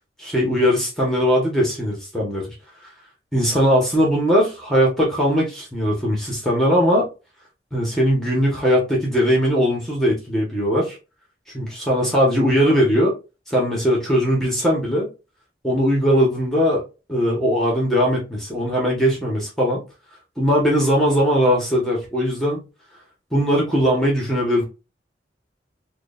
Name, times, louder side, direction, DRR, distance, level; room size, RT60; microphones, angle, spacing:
voice 1, 0.2-2.4 3.3-7.1 7.7-11.0 11.5-13.1 13.5-15.1 15.6-16.8 17.1-19.8 20.4-22.6 23.3-24.6, equal, ahead, 1.2 m, -19 dB
4.8 x 2.4 x 2.5 m
head